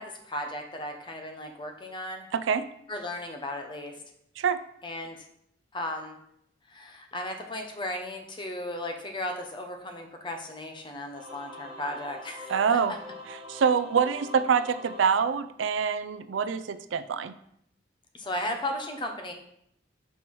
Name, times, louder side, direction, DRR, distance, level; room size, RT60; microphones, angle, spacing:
voice 1, 0.0-2.3 2.9-4.0 4.8-5.3 5.7-6.2 6.7-12.8 18.1-19.3, left 1 dB, 25° left, 4 dB, 0.8 m, -35 dB
voice 2, 2.3-2.7 4.4-4.6 12.5-12.9 13.5-17.3, right 6 dB, 75° right, 12 dB, 0.4 m, -25 dB
Singing / Musical instrument, 11.1-15.9, left 2 dB, 30° right, 1.0 m, -44 dB
5.5 x 4.6 x 4.6 m, 0.73 s
head